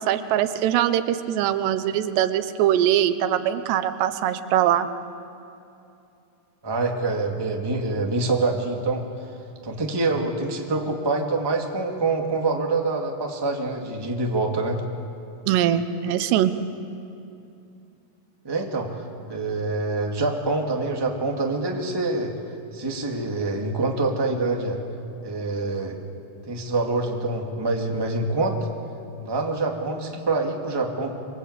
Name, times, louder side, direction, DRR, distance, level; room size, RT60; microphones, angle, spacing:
voice 1, 0.0-4.9 15.5-16.5, right 11 dB, 85° right, 11 dB, 3.1 m, -22 dB
voice 2, 6.6-9.0 9.6-14.8 18.4-22.3 22.7-24.8 25.2-26.0 26.5-28.6 29.2-31.1, right 3 dB, 10° right, 1 dB, 1.6 m, -25 dB
27.5 x 24.0 x 8.4 m, 2.7 s
omnidirectional pair, 4.8 m